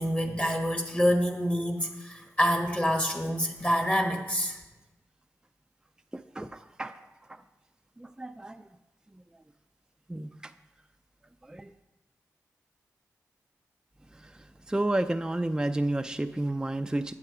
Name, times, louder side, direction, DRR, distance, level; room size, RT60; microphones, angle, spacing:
voice 1, 0.0-4.6, equal, 20° left, 5 dB, 1.2 m, -27 dB
voice 2, 8.0-8.6 10.1-10.3 11.5-11.7 14.2-14.3 14.7-17.1, right 1 dB, 10° right, 7 dB, 0.4 m, -30 dB
7.8 x 7.5 x 4.8 m, 1.0 s
cardioid pair, 50°, 6 cm